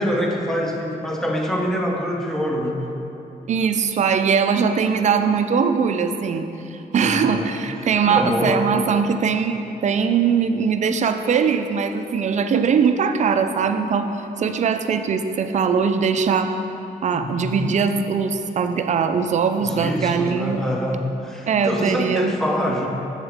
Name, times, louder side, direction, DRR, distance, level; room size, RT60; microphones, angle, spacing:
voice 1, 0.0-2.8 6.9-7.5 8.1-8.7 17.1-17.5 19.6-22.9, equal, 5° left, 0 dB, 0.8 m, -25 dB
voice 2, 3.5-14.1 14.4-16.5 17.0-20.6 21.5-22.4, right 6 dB, 45° right, 8 dB, 0.4 m, -21 dB
8.0 x 7.2 x 3.5 m, 2.9 s
cardioid pair, 130°, 16 cm